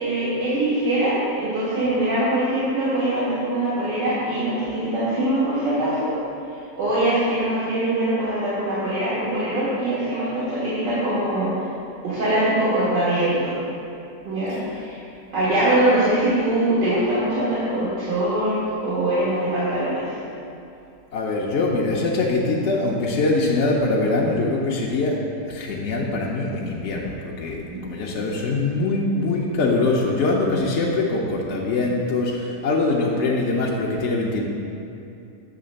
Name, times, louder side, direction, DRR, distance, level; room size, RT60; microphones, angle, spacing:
voice 1, 0.0-6.1 6.5-11.7 12.0-13.5 14.2-15.0 15.3-20.2 27.7-27.9, right 1 dB, 85° right, -11 dB, 2.2 m, -23 dB
voice 2, 21.1-25.2 25.5-34.4, left 2 dB, 60° left, -3 dB, 0.8 m, -23 dB
8.6 x 3.2 x 6.3 m, 2.6 s
omnidirectional pair, 1.8 m